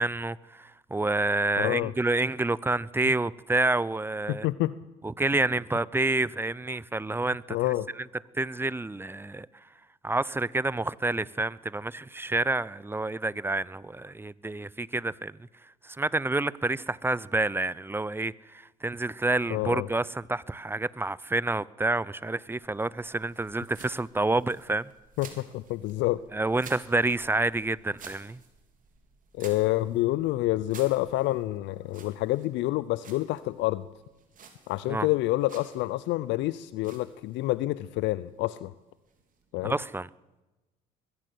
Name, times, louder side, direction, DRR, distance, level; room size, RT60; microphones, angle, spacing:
voice 1, 0.0-4.5 5.0-7.6 8.3-9.5 10.0-15.4 15.8-24.9 26.3-28.4 34.9-35.1 39.6-40.1, right 2 dB, 10° right, 0.7 m, -28 dB
voice 2, 1.6-1.9 4.3-4.7 7.5-7.9 19.5-19.9 25.2-26.2 29.3-33.8 34.7-38.7 39.5-39.7, left 17 dB, 65° left, 0.7 m, -28 dB
sound 1, 22.6-39.9, right 5 dB, 40° right, 4.2 m, -54 dB
21.0 x 15.5 x 7.9 m
hypercardioid pair, 65°, 20 cm